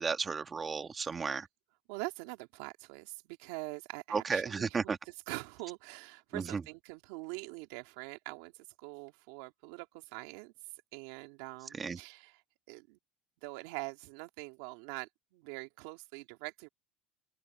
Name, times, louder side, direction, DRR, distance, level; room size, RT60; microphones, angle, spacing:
voice 1, 0.0-1.5 4.1-5.0 6.3-6.6 11.8-12.0, right 5 dB, 20° right, 1.3 m, -33 dB
voice 2, 1.9-12.4 12.7-13.0 13.4-16.7, right 24 dB, 75° right, 2.5 m, -44 dB
cardioid pair, 145°, 0 cm